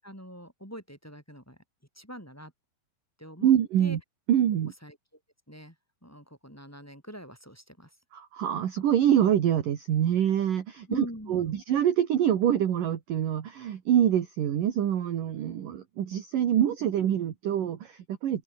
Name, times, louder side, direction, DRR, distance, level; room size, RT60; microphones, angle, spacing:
voice 1, 0.0-1.6 2.0-2.5 3.2-4.0 4.8-5.0 5.5-5.8 6.0-8.0 10.9-11.6, equal, 5° left, 7.2 m, -43 dB
voice 2, 3.4-4.0 4.3-4.7 8.1-18.4, right 10 dB, 55° right, 3.0 m, -25 dB
open air
omnidirectional pair, 5.5 m